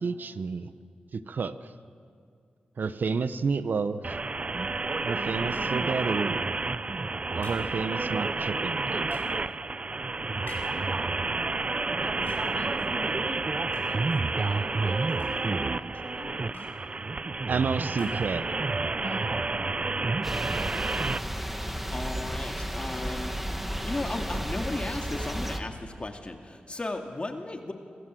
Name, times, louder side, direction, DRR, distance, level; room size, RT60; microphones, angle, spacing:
voice 1, 0.0-0.7 1.1-1.6 2.8-4.2 5.0-6.4 7.3-9.2 17.5-18.5, right 5 dB, 70° right, 12 dB, 1.0 m, -30 dB
sound 1, 4.0-21.2, right 3 dB, 40° right, 0.6 m, -30 dB
sound 2, 5.5-5.9 7.4-7.8 9.1-9.4 10.5-10.9 12.1-12.6 13.7-14.1 15.0-15.6 16.5-16.9 17.9-18.4, left 3 dB, 85° left, 7.1 m, -48 dB
voice 2, 12.0-13.5 13.8-15.1 15.4-16.7 19.0-19.6, left 3 dB, 65° left, 3 dB, 3.1 m, -49 dB
sound 3, 20.2-25.6, equal, 5° right, 2.3 m, -33 dB
voice 3, 21.9-23.4 23.8-27.7, left 2 dB, 35° left, 4 dB, 2.5 m, -35 dB
26.5 x 24.5 x 7.8 m, 2.2 s
cardioid pair, 60°, 3 cm